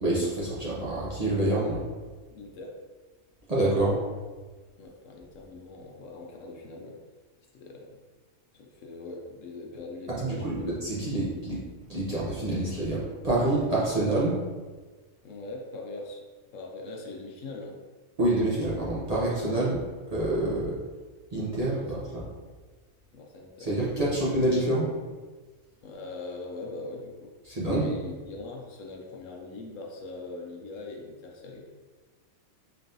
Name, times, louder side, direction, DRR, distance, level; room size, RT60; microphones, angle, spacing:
voice 1, 0.0-1.8 3.5-4.0 10.2-11.6 11.9-14.4 18.2-19.8 20.1-20.8 21.3-22.2 23.6-24.8 27.4-27.9, right 1 dB, 35° right, -8 dB, 0.7 m, -27 dB
voice 2, 2.3-2.8 4.8-7.0 7.5-8.0 8.5-10.9 15.2-16.2 16.5-17.8 21.6-22.3 23.1-24.7 25.8-27.4 27.6-31.6, left 2 dB, 70° left, 0 dB, 0.9 m, -41 dB
3.9 x 3.3 x 2.7 m, 1.4 s
omnidirectional pair, 1.4 m